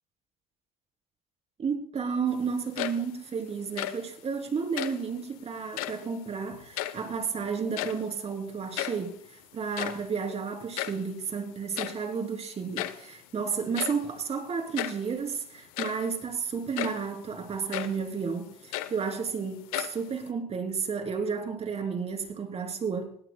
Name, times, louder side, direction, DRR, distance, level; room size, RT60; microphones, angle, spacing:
voice 1, 1.6-23.1, right 5 dB, 35° right, 3.2 m, -32 dB
sound 1, 2.6-3.3 3.6-4.1 4.7-5.1 5.7-6.1 6.5-7.3 7.6-8.2 8.5-8.6 8.8-9.1 9.6-11.1 11.8-12.1 12.8-13.1 13.7-14.1 14.8-15.1 15.6-16.1 16.8-17.1 17.7-18.0 18.5-19.3 19.7-20.3, left 14 dB, 90° left, 0.8 m, -35 dB
20.5 x 17.0 x 2.3 m
supercardioid pair, 90°, 18 cm